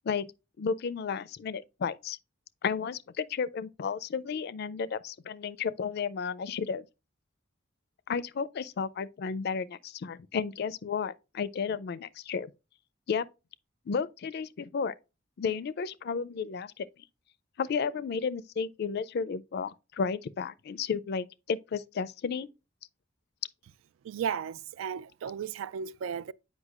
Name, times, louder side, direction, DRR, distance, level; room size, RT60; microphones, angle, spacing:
voice 1, 0.6-2.2 2.6-6.9 8.1-12.5 13.1-13.3 13.9-14.9 15.4-16.9 17.6-22.5, left 6 dB, 55° left, 0.4 m, -33 dB
voice 2, 24.0-26.3, right 7 dB, 85° right, 0.3 m, -35 dB
8.1 x 5.3 x 2.4 m
head